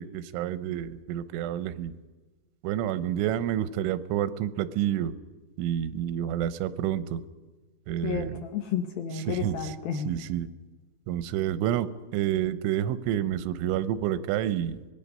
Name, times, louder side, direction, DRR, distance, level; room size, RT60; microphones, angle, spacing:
voice 1, 0.0-2.0 2.6-5.1 5.6-7.2 7.9-8.4 9.3-9.6 10.0-10.5 11.1-14.8, right 11 dB, 85° right, 14 dB, 3.2 m, -29 dB
voice 2, 8.0-10.1, left 7 dB, 75° left, 6 dB, 2.3 m, -31 dB
25.0 x 20.5 x 5.5 m, 1.3 s
omnidirectional pair, 5.4 m